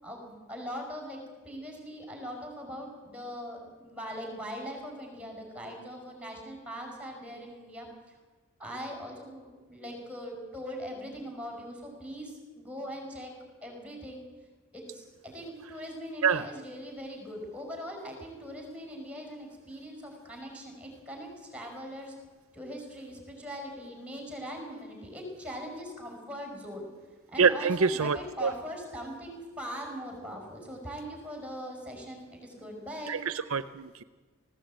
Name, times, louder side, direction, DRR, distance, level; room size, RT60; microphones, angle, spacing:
voice 1, 0.0-8.2 8.6-13.3 13.6-14.2 14.7-22.1 22.5-26.9 27.3-33.2, equal, 5° right, 3 dB, 5.6 m, -41 dB
voice 2, 27.4-28.5 33.1-34.0, right 5 dB, 65° right, 13 dB, 0.6 m, -26 dB
19.5 x 16.0 x 8.9 m, 1.3 s
head